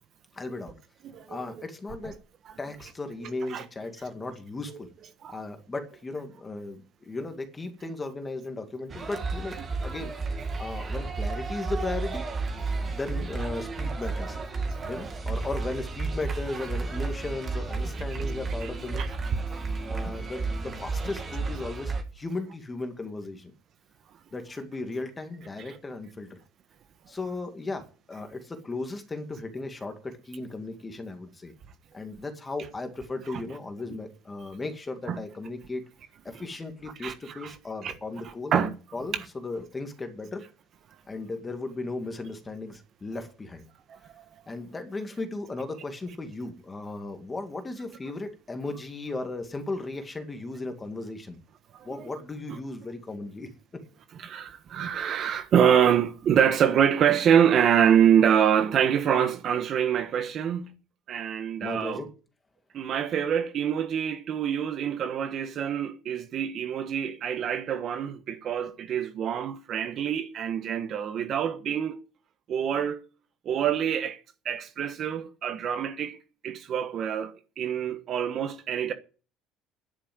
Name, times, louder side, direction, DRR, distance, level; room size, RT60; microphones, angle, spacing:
voice 1, 0.3-0.8 1.3-2.1 2.6-4.9 5.3-12.2 12.8-14.4 14.8-19.0 19.9-23.5 24.3-26.4 27.1-31.5 31.9-35.9 36.2-38.6 38.9-40.4 41.1-43.7 44.5-51.4 51.8-53.5 61.6-62.1, left 2 dB, 15° left, 2.2 m, -36 dB
voice 2, 1.0-1.4 3.2-3.6 5.2-5.4 18.6-18.7 19.0-19.1 20.0-20.2 25.7-25.8 33.3-33.4 35.1-35.2 37.0-37.5 37.8-37.9 38.5-38.7 43.9-44.2 51.7-52.1 54.2-60.8 61.1-62.1 62.7-72.0 72.5-73.0 73.4-74.2 74.4-76.2 76.4-78.9, right 8 dB, 40° right, 1.3 m, -25 dB
sound 1, 8.9-22.0, right 3 dB, 25° right, 2.4 m, -32 dB
10.5 x 8.6 x 9.4 m
cardioid pair, 150°, 0 cm